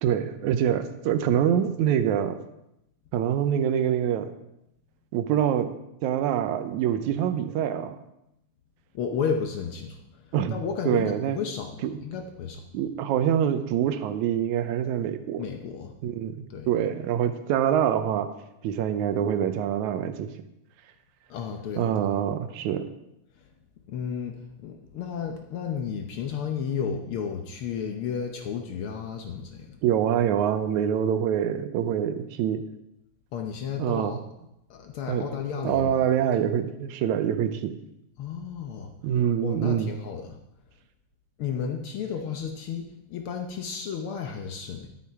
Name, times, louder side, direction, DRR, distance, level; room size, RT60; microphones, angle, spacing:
voice 1, 0.0-2.4 3.1-4.3 5.1-5.7 6.0-8.0 10.3-10.6 10.9-11.4 11.8-12.0 12.7-15.5 16.0-16.4 16.7-18.3 18.6-20.3 21.8-22.9 29.8-32.6 33.8-34.2 35.1-35.3 35.6-37.7 39.0-39.9, right 9 dB, 75° right, 10 dB, 2.0 m, -25 dB
voice 2, 8.9-10.2 10.5-11.7 12.0-12.6 15.4-15.9 16.5-16.7 21.3-21.9 23.9-29.8 33.3-34.2 34.7-36.1 38.2-38.9 39.4-40.4 41.4-44.9, left 6 dB, 80° left, 3 dB, 1.2 m, -32 dB
12.5 x 7.0 x 4.7 m, 0.84 s
omnidirectional pair, 3.5 m